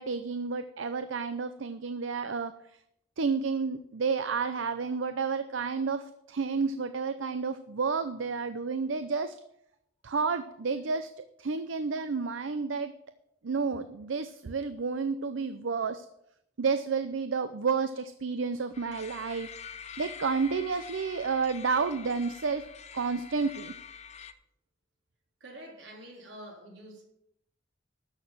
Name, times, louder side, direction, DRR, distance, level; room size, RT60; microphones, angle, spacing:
voice 1, 0.0-2.5 3.2-9.3 10.0-12.9 13.4-16.1 16.6-19.5 20.0-22.6 22.9-23.7, right 5 dB, 85° right, 11 dB, 0.6 m, -30 dB
sound 1, 18.7-24.3, left 7 dB, 35° left, 0.7 m, -46 dB
voice 2, 25.4-27.0, right 1 dB, 70° right, 0 dB, 3.8 m, -47 dB
13.0 x 6.6 x 7.3 m, 0.76 s
head